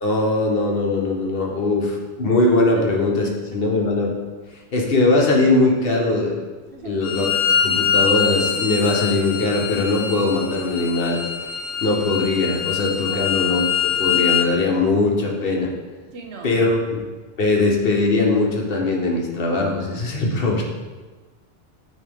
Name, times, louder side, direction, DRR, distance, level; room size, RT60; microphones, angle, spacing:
voice 1, 0.0-4.1 4.7-6.4 6.8-7.4 7.6-11.2 11.8-15.7 16.4-17.0 17.4-20.6, left 2 dB, 60° left, -1 dB, 1.1 m, -20 dB
voice 2, 3.2-3.6 6.7-7.1 13.0-13.3 16.1-16.6, right 3 dB, 75° right, 2 dB, 1.0 m, -38 dB
Bowed string instrument, 7.0-14.5, left 8 dB, 80° left, 0.8 m, -23 dB
9.2 x 3.1 x 3.5 m, 1.3 s
omnidirectional pair, 1.1 m